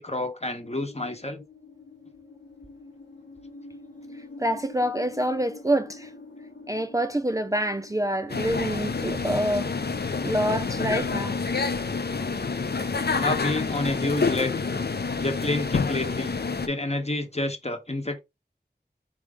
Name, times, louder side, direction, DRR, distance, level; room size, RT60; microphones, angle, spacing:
voice 1, 0.0-1.4 13.1-14.5 15.2-16.4 16.6-18.2, left 2 dB, 35° left, 1.0 m, -29 dB
sound 1, 0.6-17.5, left 2 dB, 80° left, 1.3 m, -46 dB
voice 2, 4.4-6.1 6.7-9.7 10.2-11.4 12.2-12.3, right 1 dB, 20° right, 0.4 m, -26 dB
sound 2, 8.3-16.7, left 4 dB, 65° left, 0.5 m, -28 dB
4.9 x 3.1 x 3.5 m
wide cardioid pair, 45°, 18 cm